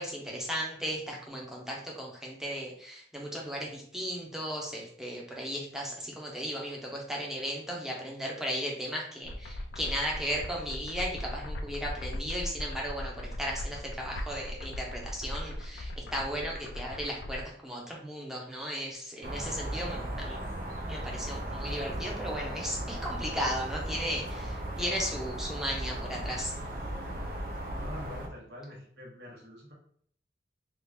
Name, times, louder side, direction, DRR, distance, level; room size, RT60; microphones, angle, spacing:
voice 1, 0.0-20.4 20.9-26.5, equal, 5° right, -2 dB, 0.7 m, -36 dB
sound 1, 9.2-17.5, left 1 dB, 75° left, 0.4 m, -39 dB
sound 2, 19.2-28.3, right 1 dB, 55° right, 0.5 m, -36 dB
voice 2, 27.7-29.7, left 1 dB, 70° right, -3 dB, 1.1 m, -45 dB
2.9 x 2.4 x 3.4 m, 0.62 s
head